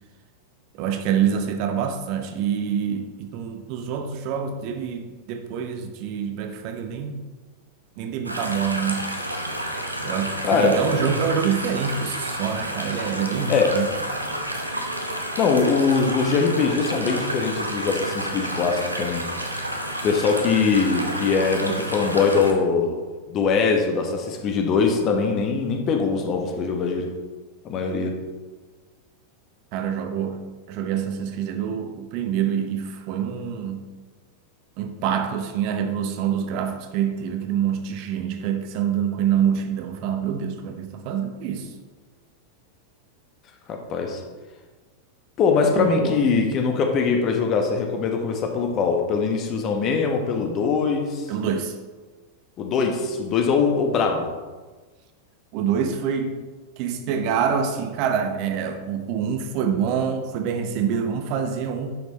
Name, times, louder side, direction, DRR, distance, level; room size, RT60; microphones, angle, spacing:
voice 1, 0.7-7.2 8.0-9.1 10.0-13.9 29.7-33.9 34.8-41.7 45.7-46.2 51.3-51.7 55.5-56.4 56.8-62.0, right 7 dB, 45° right, 6 dB, 0.8 m, -26 dB
sound 1, 8.3-22.5, right 1 dB, 85° right, 0.9 m, -30 dB
voice 2, 10.4-10.8 11.1-11.2 13.5-13.7 15.4-19.2 20.0-23.0 23.3-27.1 27.6-28.1 43.7-44.2 45.4-51.3 52.6-54.3, left 5 dB, 35° left, 3 dB, 1.2 m, -22 dB
10.0 x 6.4 x 3.1 m, 1.3 s
figure-of-eight pair, 90°, 0 cm